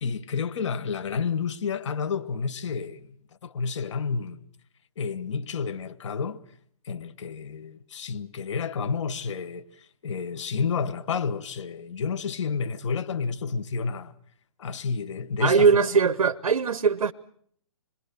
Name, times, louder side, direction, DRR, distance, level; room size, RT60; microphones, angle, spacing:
voice 1, 0.0-3.1 3.4-4.4 5.0-6.4 6.8-9.6 10.0-14.1 14.6-15.8, left 5 dB, 55° left, 1.2 m, -30 dB
voice 2, 15.4-17.1, right 5 dB, 85° right, 0.9 m, -20 dB
27.0 x 21.5 x 6.6 m
hypercardioid pair, 150°, 19 cm